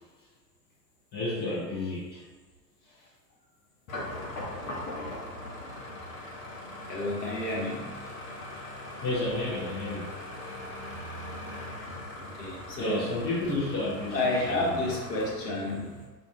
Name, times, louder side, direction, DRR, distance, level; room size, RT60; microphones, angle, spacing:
voice 1, 1.1-2.3 9.0-10.2 12.8-14.7, left 2 dB, 20° left, -8 dB, 0.7 m, -31 dB
sound 1, 3.9-15.3, left 1 dB, 55° left, 0.9 m, -40 dB
voice 2, 6.9-8.0 12.1-13.1 14.1-16.1, left 2 dB, 80° left, -3 dB, 0.9 m, -31 dB
2.4 x 2.4 x 2.8 m, 1.4 s
figure-of-eight pair, 90°, 49 cm